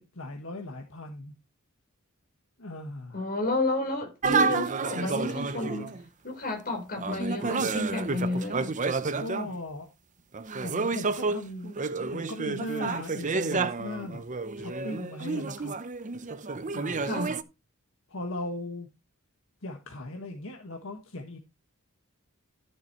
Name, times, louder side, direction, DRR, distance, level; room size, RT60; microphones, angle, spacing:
voice 1, 0.0-1.3 2.6-3.2 9.2-9.9 10.6-11.7 12.1-14.2 14.6-15.7 16.7-17.1 18.1-18.9 19.6-21.4, left 1 dB, 65° left, 1.6 m, -38 dB
voice 2, 3.1-5.9 6.2-8.8 17.0-17.3, left 2 dB, 45° left, 4.2 m, -31 dB
sound 1, 4.2-6.0 7.0-9.6 10.3-17.4, right 4 dB, 35° right, 0.7 m, -30 dB
13.0 x 8.0 x 3.1 m
head